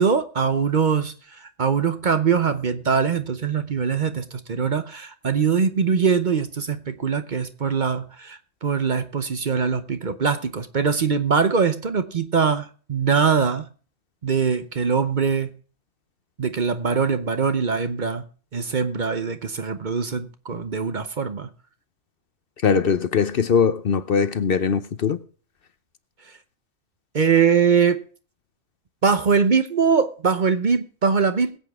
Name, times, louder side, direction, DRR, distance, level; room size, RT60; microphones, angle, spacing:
voice 1, 0.0-13.7 14.2-15.5 16.4-18.3 18.5-21.5 27.1-28.0 29.0-31.6, right 6 dB, 45° right, 0.9 m, -22 dB
voice 2, 22.6-25.2, left 6 dB, 55° left, 0.8 m, -21 dB
21.5 x 8.1 x 3.5 m
omnidirectional pair, 1.2 m